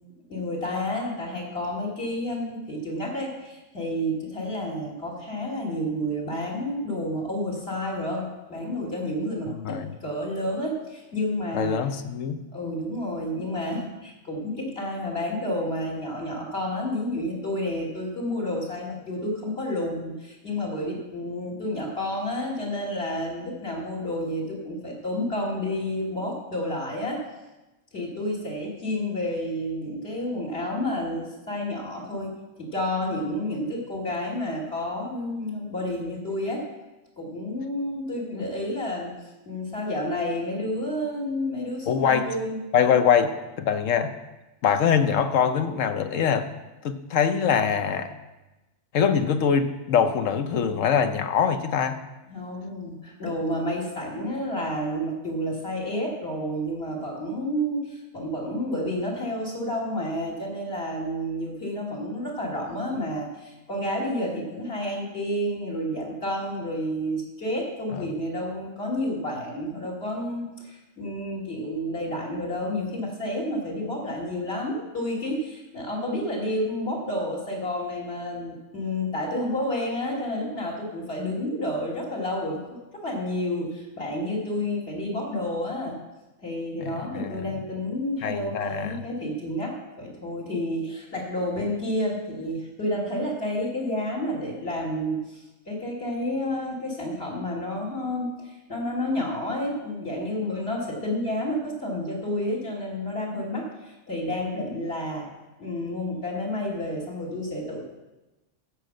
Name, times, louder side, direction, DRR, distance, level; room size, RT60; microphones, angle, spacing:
voice 1, 0.3-11.7 12.5-27.2 27.9-32.3 32.6-36.6 37.2-39.1 39.5-42.6 52.3-86.0 86.4-105.3 105.6-107.8, left 1 dB, 55° left, -2 dB, 2.9 m, -30 dB
voice 2, 9.5-9.9 11.5-12.7 41.9-42.3 42.7-44.1 44.6-46.5 46.8-48.1 48.9-52.0 67.9-68.1 86.8-87.6 88.2-89.0, left 7 dB, 90° left, 9 dB, 1.2 m, -24 dB
13.5 x 5.0 x 7.6 m, 1.1 s
omnidirectional pair, 1.3 m